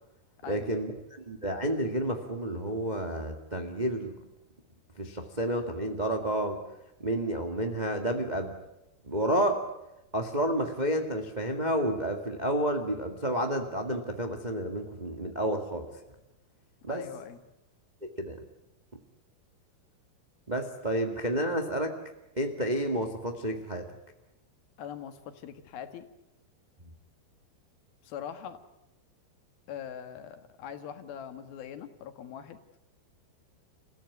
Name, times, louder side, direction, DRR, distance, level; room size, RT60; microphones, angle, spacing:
voice 1, 0.5-4.1 5.0-6.6 7.0-8.5 9.1-9.6 10.1-15.9 16.8-17.0 18.0-18.4 20.5-21.9 22.4-23.9, right 1 dB, 40° right, 4 dB, 0.6 m, -30 dB
voice 2, 16.9-17.4 24.8-26.1 28.0-28.6 29.7-32.6, left 8 dB, 70° left, 9 dB, 3.3 m, -42 dB
29.0 x 15.5 x 9.6 m, 0.93 s
omnidirectional pair, 4.7 m